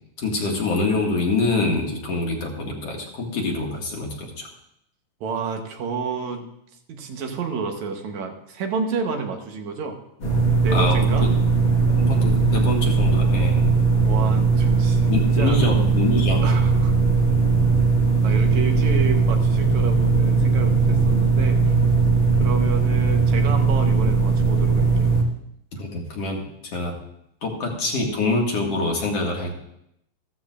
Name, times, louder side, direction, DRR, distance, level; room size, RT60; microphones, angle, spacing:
voice 1, 0.2-4.5 10.7-11.3 11.9-13.6 15.1-16.4 25.7-26.9 27.4-29.5, left 2 dB, 60° left, 0 dB, 2.6 m, -25 dB
voice 2, 5.2-6.5 6.9-10.0 10.6-11.3 14.0-15.6 16.4-16.9 18.2-21.7 22.4-25.2, right 5 dB, 75° right, 4 dB, 2.4 m, -30 dB
sound 1, 10.2-25.2, right 4 dB, 35° left, 1.2 m, -19 dB
15.0 x 13.5 x 2.4 m, 0.77 s
omnidirectional pair, 3.3 m